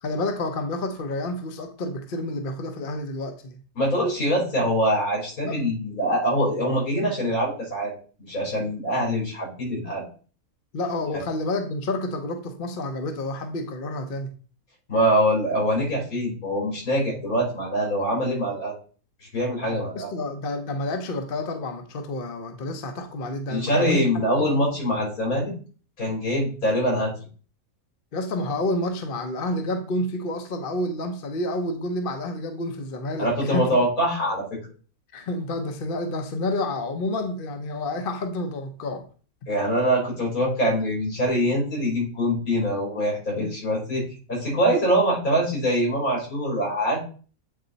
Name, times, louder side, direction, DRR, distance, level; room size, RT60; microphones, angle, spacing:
voice 1, 0.0-3.6 5.4-5.6 10.7-14.3 19.7-24.1 24.4-24.5 28.1-33.7 35.1-39.1, left 1 dB, 45° left, 0.9 m, -29 dB
voice 2, 3.7-7.9 8.3-10.0 11.1-11.2 14.9-18.7 19.3-20.1 23.5-25.5 26.0-27.1 33.2-34.4 39.5-47.0, equal, 70° left, 4.3 m, -24 dB
8.5 x 4.2 x 4.0 m
omnidirectional pair, 1.5 m